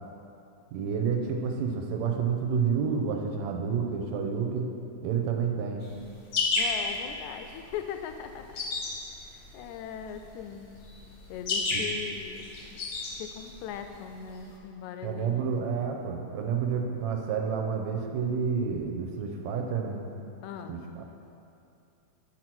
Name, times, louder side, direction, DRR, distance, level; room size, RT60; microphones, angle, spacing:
voice 1, 0.7-4.7 5.0-5.8 11.7-11.8 15.0-20.0 20.7-21.0, right 6 dB, 75° right, 3 dB, 1.9 m, -29 dB
sound 1, 5.8-14.5, left 3 dB, 60° left, 1.2 m, -32 dB
voice 2, 6.6-8.6 9.5-10.7 11.3-12.8 13.2-15.5 20.4-20.8, left 8 dB, 80° left, 7 dB, 1.9 m, -39 dB
9.7 x 4.5 x 6.0 m, 2.7 s
omnidirectional pair, 3.4 m